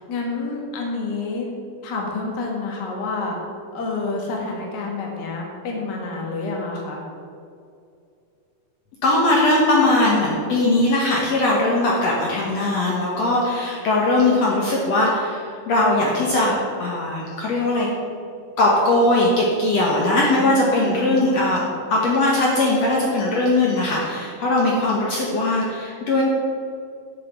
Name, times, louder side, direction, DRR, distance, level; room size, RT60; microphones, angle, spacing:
voice 1, 0.1-1.5 1.8-3.4 3.7-7.0 20.1-21.3, left 3 dB, 40° left, -1 dB, 1.9 m, -28 dB
voice 2, 9.0-17.9 18.6-26.2, left 2 dB, 60° left, -3 dB, 2.3 m, -20 dB
9.1 x 6.6 x 7.3 m, 2.4 s
omnidirectional pair, 3.9 m